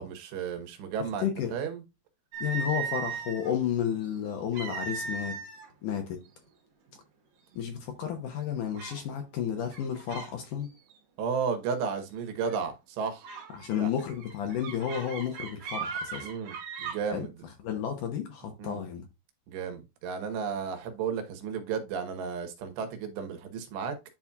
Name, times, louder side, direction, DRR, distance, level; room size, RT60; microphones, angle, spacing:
voice 1, 0.0-1.8 11.2-13.2 13.8-13.9 16.2-17.3 18.6-18.8 19.5-24.0, right 6 dB, 90° right, 3.4 m, -33 dB
voice 2, 1.0-1.5 2.4-5.4 5.8-6.2 7.6-10.7 13.6-16.3 17.1-17.3 17.6-19.1, left 9 dB, 70° left, 2.1 m, -32 dB
sound 1, 2.3-3.5 4.5-5.7 6.0-6.3 6.9-7.0 7.5-8.0 8.8-9.0 9.6-10.3 10.6-11.0 12.4-12.7 13.2-17.0, right 5 dB, 60° right, 3.4 m, -37 dB
10.5 x 4.2 x 2.3 m
omnidirectional pair, 4.7 m